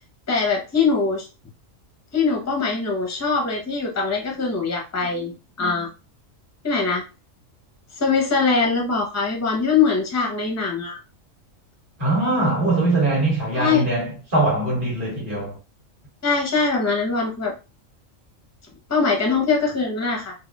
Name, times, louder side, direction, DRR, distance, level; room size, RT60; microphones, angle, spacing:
voice 1, 0.3-1.3 2.1-5.3 5.6-5.9 6.6-7.0 8.0-11.0 13.5-13.8 16.2-17.5 18.9-20.3, left 4 dB, 15° left, 0.6 m, -22 dB
voice 2, 12.0-15.6, right 2 dB, 40° right, 1.9 m, -22 dB
4.1 x 2.2 x 2.2 m
omnidirectional pair, 1.4 m